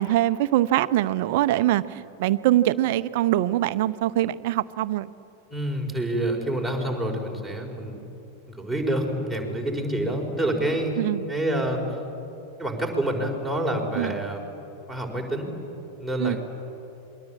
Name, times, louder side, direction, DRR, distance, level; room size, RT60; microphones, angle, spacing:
voice 1, 0.0-5.1 11.0-11.2 13.9-14.2 16.2-16.4, right 14 dB, 50° right, 14 dB, 0.8 m, -23 dB
voice 2, 5.5-8.0 8.5-10.9 11.3-11.8 12.6-14.4 14.9-15.5 16.0-16.4, right 1 dB, ahead, 4 dB, 5.1 m, -27 dB
27.5 x 22.5 x 8.7 m, 2.9 s
figure-of-eight pair, 90°, 0 cm